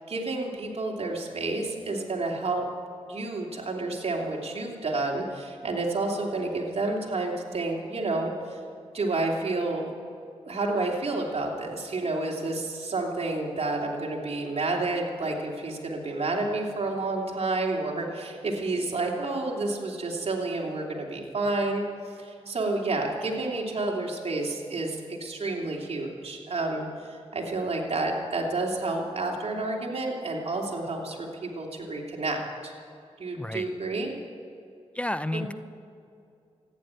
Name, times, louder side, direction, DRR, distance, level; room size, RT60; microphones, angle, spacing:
voice 1, 0.1-2.7 3.0-8.6 8.9-9.9 10.5-32.7 33.2-34.1 35.3-35.5, right 2 dB, 55° right, 0 dB, 3.0 m, -30 dB
voice 2, 34.9-35.5, left 1 dB, 10° left, 13 dB, 0.6 m, -30 dB
14.5 x 10.0 x 8.9 m, 2.5 s
cardioid pair, 50°, 12 cm